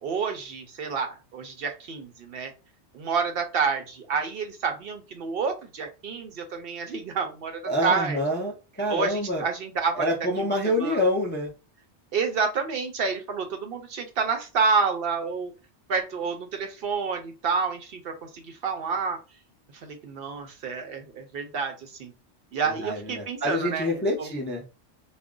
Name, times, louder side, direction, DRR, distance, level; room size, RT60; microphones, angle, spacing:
voice 1, 0.0-2.5 2.9-8.2 8.9-11.0 12.1-15.5 15.9-19.2 19.7-22.1 22.5-24.3, right 5 dB, 65° right, 5 dB, 0.7 m, -29 dB
voice 2, 7.7-9.4 10.0-11.5 22.8-24.6, left 1 dB, 15° left, -2 dB, 0.4 m, -26 dB
2.4 x 2.1 x 3.6 m, 0.30 s
omnidirectional pair, 1.2 m